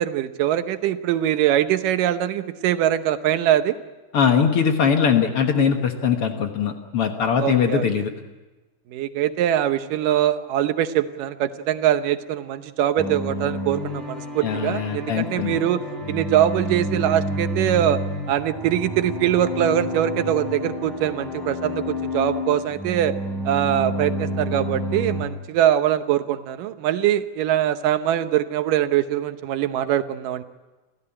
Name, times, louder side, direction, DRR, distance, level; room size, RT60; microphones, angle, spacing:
voice 1, 0.0-3.8 7.4-7.9 8.9-15.8 16.1-18.0 18.3-23.1 23.5-30.4, right 11 dB, 90° right, 10 dB, 2.6 m, -22 dB
voice 2, 4.1-8.1 14.4-15.6, left 7 dB, 55° left, 5 dB, 1.9 m, -21 dB
sound 1, 13.0-25.2, equal, ahead, 6.2 m, -29 dB
28.5 x 14.5 x 9.9 m, 1.2 s
omnidirectional pair, 3.7 m